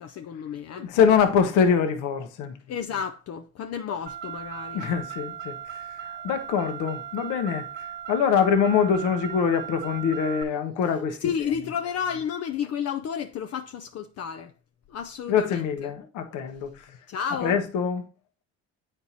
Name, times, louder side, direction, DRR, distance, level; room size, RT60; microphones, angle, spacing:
voice 1, 0.0-0.9 2.7-4.9 11.2-14.5 14.9-15.9 16.9-17.6, left 7 dB, 50° left, 0.6 m, -32 dB
voice 2, 0.7-2.5 4.7-5.6 6.1-7.6 8.1-11.2 15.3-16.7 17.4-18.0, left 7 dB, 70° left, 1.0 m, -24 dB
Car, 4.1-10.4, right 9 dB, 35° right, 0.8 m, -37 dB
8.2 x 4.4 x 2.8 m
supercardioid pair, 70°, 31 cm